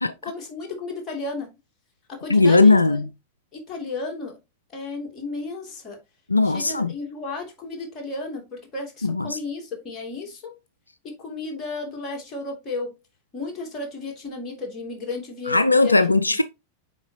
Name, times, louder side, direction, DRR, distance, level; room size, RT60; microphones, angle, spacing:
voice 1, 0.2-1.5 2.1-3.1 3.5-4.3 4.7-6.0 6.4-10.5 11.0-12.9 13.3-15.9, left 3 dB, 25° left, 2.7 m, -33 dB
voice 2, 2.3-3.0 6.3-6.9 9.0-9.4 15.5-16.4, left 3 dB, 85° left, 0.3 m, -18 dB
7.6 x 4.9 x 2.8 m
figure-of-eight pair, 90°, 0 cm